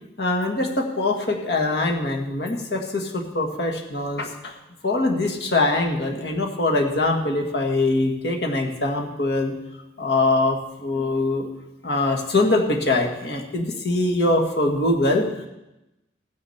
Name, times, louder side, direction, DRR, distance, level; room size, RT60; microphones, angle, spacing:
voice 1, 0.2-4.5 4.8-9.5 10.0-11.5 11.8-15.3, left 2 dB, 70° left, 2 dB, 1.8 m, -23 dB
15.0 x 9.8 x 4.3 m, 0.94 s
head